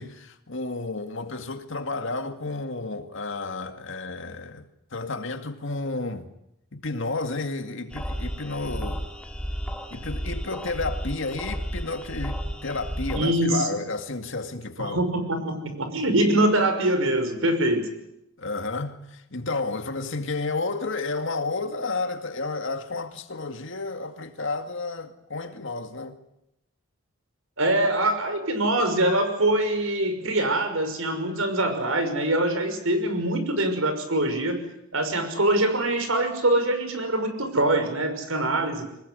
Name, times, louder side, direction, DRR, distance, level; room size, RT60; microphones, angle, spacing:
voice 1, 0.0-6.3 6.7-9.1 9.9-15.0 18.4-26.2, left 3 dB, 60° left, 2.2 m, -31 dB
sound 1, 7.9-13.2, equal, 5° left, 2.3 m, -33 dB
voice 2, 13.1-13.7 14.8-17.9 27.6-34.6 34.9-38.9, right 1 dB, 70° right, 5.9 m, -24 dB
24.5 x 20.5 x 9.7 m
head